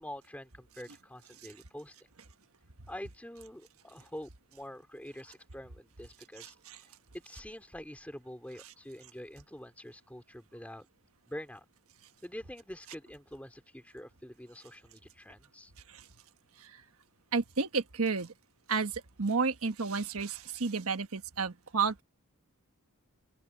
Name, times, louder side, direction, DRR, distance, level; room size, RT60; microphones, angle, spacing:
voice 1, 0.0-1.9 2.9-6.9 7.1-10.9 11.3-11.6 12.2-15.7, equal, 5° left, 2.7 m, -46 dB
voice 2, 6.4-6.8 15.9-16.0 16.6-16.8 17.3-18.3 18.7-22.0, right 4 dB, 80° right, 1.3 m, -32 dB
open air
head